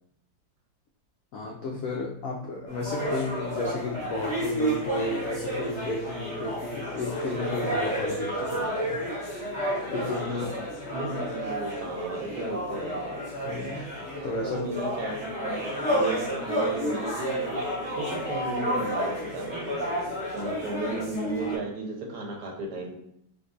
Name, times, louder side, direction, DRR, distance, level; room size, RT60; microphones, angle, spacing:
voice 1, 1.3-9.0 9.9-10.5 13.4-13.9 14.2-14.6, left 3 dB, 85° left, -1 dB, 0.7 m, -32 dB
sound 1, 2.7-21.6, right 1 dB, 5° left, 1.1 m, -31 dB
voice 2, 10.2-13.2 14.4-17.6 18.0-19.9 20.3-23.0, right 2 dB, 65° right, 0 dB, 1.2 m, -35 dB
3.7 x 2.6 x 2.4 m, 0.75 s
omnidirectional pair, 2.0 m